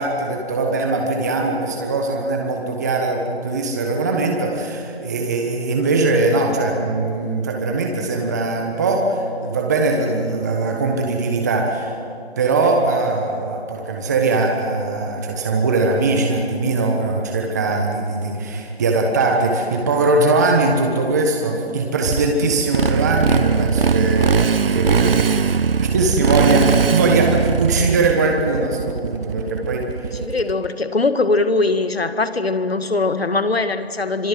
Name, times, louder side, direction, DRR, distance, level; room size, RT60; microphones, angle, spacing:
voice 1, 0.0-12.0 12.4-30.1, right 3 dB, 15° right, 2 dB, 1.3 m, -21 dB
Motorcycle, 22.0-30.7, right 6 dB, 60° right, 0.6 m, -20 dB
voice 2, 30.2-34.3, left 3 dB, 70° left, 10 dB, 2.0 m, -21 dB
26.0 x 22.0 x 7.8 m, 2.5 s
figure-of-eight pair, 165°, 32 cm